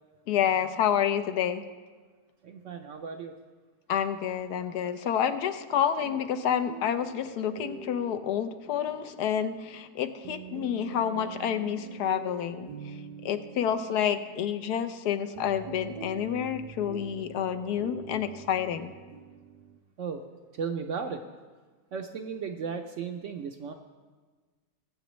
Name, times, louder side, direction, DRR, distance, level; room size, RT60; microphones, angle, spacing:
voice 1, 0.3-1.6 3.9-12.7 13.2-18.9, left 9 dB, 80° left, 10 dB, 1.2 m, -29 dB
voice 2, 2.4-3.3 20.0-20.2 20.5-21.2 21.9-23.7, right 6 dB, 65° right, 5 dB, 0.8 m, -35 dB
sound 1, 6.0-19.8, right 7 dB, 85° right, 1.2 m, -45 dB
20.0 x 7.7 x 3.1 m, 1.4 s
omnidirectional pair, 1.7 m